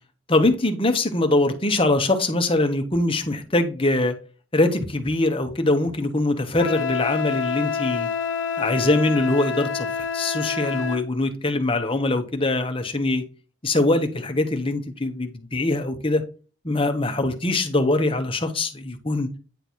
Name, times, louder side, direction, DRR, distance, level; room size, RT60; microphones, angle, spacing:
voice 1, 0.3-4.1 4.5-8.1 8.6-13.2 13.6-16.2 16.6-19.3, left 2 dB, 25° left, 5 dB, 1.1 m, -22 dB
Wind instrument woodwind instrument, 6.6-11.0, left 6 dB, 75° left, 0.9 m, -27 dB
9.5 x 3.3 x 4.3 m, 0.35 s
head